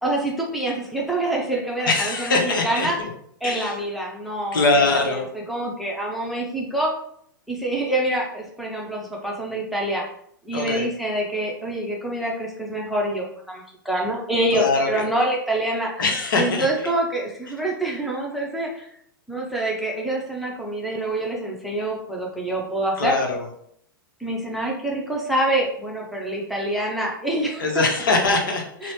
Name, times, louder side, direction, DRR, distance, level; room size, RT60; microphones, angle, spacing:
voice 1, 0.0-3.0 3.4-6.9 7.5-10.0 10.4-15.9 16.4-18.9 19.3-23.2 24.2-27.8 28.8-28.9, right 1 dB, ahead, -2 dB, 0.6 m, -26 dB
voice 2, 1.9-3.1 3.4-3.8 4.5-5.2 10.5-10.9 14.5-15.0 16.0-16.9 23.0-23.5 27.6-28.9, left 3 dB, 65° left, 2 dB, 0.8 m, -22 dB
3.9 x 2.0 x 3.1 m, 0.68 s
figure-of-eight pair, 105°, 12 cm